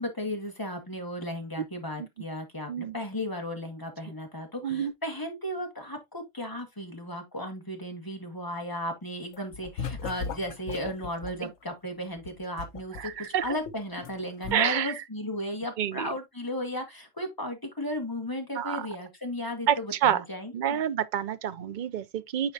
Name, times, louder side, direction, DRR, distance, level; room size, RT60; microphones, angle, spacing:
voice 1, 0.0-20.8, left 1 dB, 15° left, 1.7 m, -35 dB
sound 1, 9.3-11.4 12.2-14.1 14.4-14.5, left 5 dB, 70° left, 1.1 m, -37 dB
voice 2, 13.0-13.5 14.5-14.9 15.8-16.1 18.6-18.9 19.7-20.2 20.5-22.5, right 9 dB, 55° right, 0.5 m, -28 dB
9.6 x 4.4 x 2.7 m
omnidirectional pair, 1.3 m